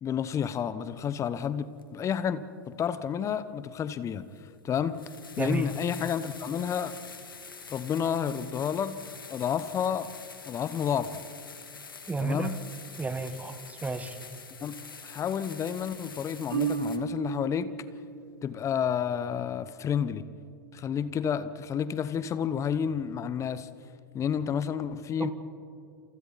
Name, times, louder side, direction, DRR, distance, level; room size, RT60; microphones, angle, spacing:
voice 1, 0.0-4.3 4.6-5.1 5.4-7.0 7.7-9.0 9.3-10.1 10.5-11.2 12.2-12.6 14.6-17.7 18.4-20.3 20.7-23.7 24.1-25.3, left 8 dB, 25° left, 1.1 m, -30 dB
sound 1, 1.8-1.9 3.7-3.8 4.4-4.5 4.9-17.0, left 5 dB, 85° left, 2.2 m, -46 dB
voice 2, 5.4-5.7 12.1-12.5 13.0-14.2 25.2-25.3, right 3 dB, 15° right, 1.7 m, -31 dB
Marimba xylophone, 16.5-18.5, right 6 dB, 80° right, 5.3 m, -33 dB
29.5 x 28.0 x 4.2 m
hypercardioid pair, 100°, 11 cm